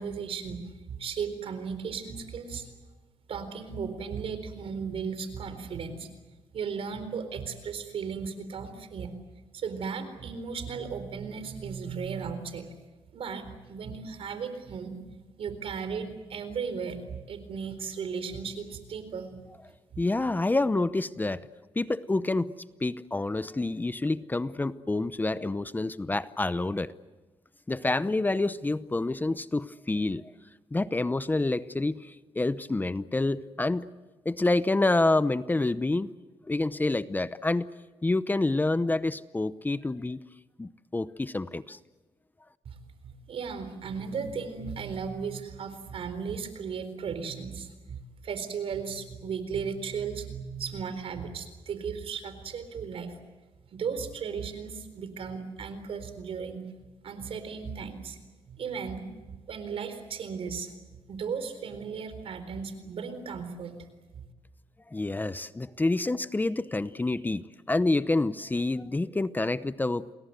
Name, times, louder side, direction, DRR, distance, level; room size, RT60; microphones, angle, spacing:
voice 1, 0.0-2.7 3.3-6.1 6.5-9.1 9.5-12.7 13.1-14.9 15.4-19.4 19.9-20.0 42.7-53.2 53.7-56.6 57.0-58.2 58.5-59.1 59.5-63.7 64.2-64.3, right 6 dB, 70° right, 11 dB, 4.0 m, -36 dB
voice 2, 20.0-21.5 21.8-22.5 22.8-26.9 27.7-30.3 30.7-33.9 34.2-36.1 36.4-37.7 38.0-40.2 40.6-41.8 64.9-70.1, left 2 dB, 20° left, 15 dB, 0.7 m, -28 dB
29.0 x 21.0 x 8.0 m, 1.2 s
cardioid pair, 90°, 10 cm